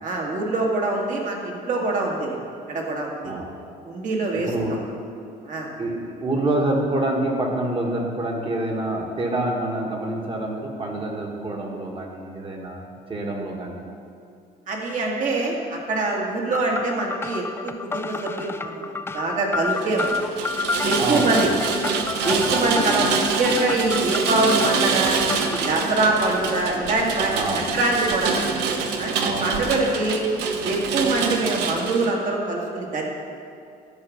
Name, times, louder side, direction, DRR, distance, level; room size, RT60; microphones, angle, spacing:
voice 1, 0.0-2.4 2.7-3.3 3.8-4.8 5.5-5.7 14.7-20.2 20.8-21.5 22.2-25.1 25.5-28.4 29.0-30.2 30.6-33.0, right 2 dB, 50° right, -1 dB, 2.0 m, -24 dB
voice 2, 4.3-4.8 5.8-12.8 13.1-13.8 21.0-21.5 22.2-22.7 27.3-27.7 29.2-29.7, right 1 dB, 30° right, 0 dB, 1.7 m, -27 dB
sound 1, 16.5-25.7, left 4 dB, 15° left, 0.4 m, -30 dB
Rain, 19.7-32.1, right 5 dB, 85° right, 0.9 m, -26 dB
11.0 x 5.0 x 7.2 m, 2.5 s
cardioid pair, 110°, 17 cm